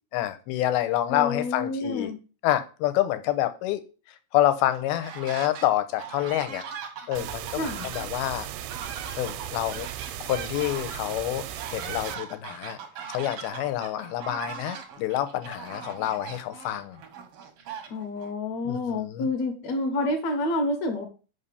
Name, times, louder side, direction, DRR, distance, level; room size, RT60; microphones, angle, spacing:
voice 1, 0.1-2.1 2.4-3.8 4.1-6.6 7.1-8.5 9.2-9.9 10.2-12.8 13.1-17.0 18.7-19.3, left 13 dB, 85° left, 10 dB, 2.7 m, -27 dB
voice 2, 1.1-2.2 7.6-7.9 17.9-21.0, left 2 dB, 60° left, 3 dB, 2.0 m, -28 dB
sound 1, 4.7-5.7 6.0-18.3, right 7 dB, 65° right, 1.4 m, -40 dB
sound 2, 7.2-12.2, right 12 dB, 85° right, 2.6 m, -37 dB
5.8 x 5.6 x 6.8 m, 0.35 s
omnidirectional pair, 4.4 m